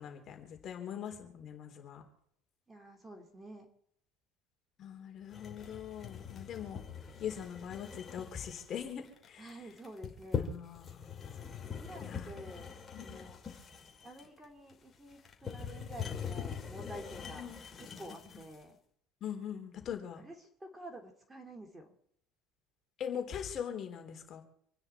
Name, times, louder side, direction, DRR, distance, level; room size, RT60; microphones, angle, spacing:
voice 1, 0.0-2.0 4.8-6.8 7.2-9.5 10.4-11.2 12.0-12.4 12.9-13.2 17.4-17.6 19.2-20.2 23.0-24.4, left 8 dB, 45° left, 4 dB, 3.6 m, -42 dB
voice 2, 2.7-3.7 9.4-10.5 11.6-12.7 13.0-13.4 14.0-17.5 17.8-18.8 20.2-21.9, right 1 dB, 10° right, 3 dB, 2.8 m, -49 dB
sound 1, 5.3-18.6, left 6 dB, 30° left, 3.0 m, -43 dB
27.0 x 9.8 x 4.5 m, 0.66 s
supercardioid pair, 115°, 0 cm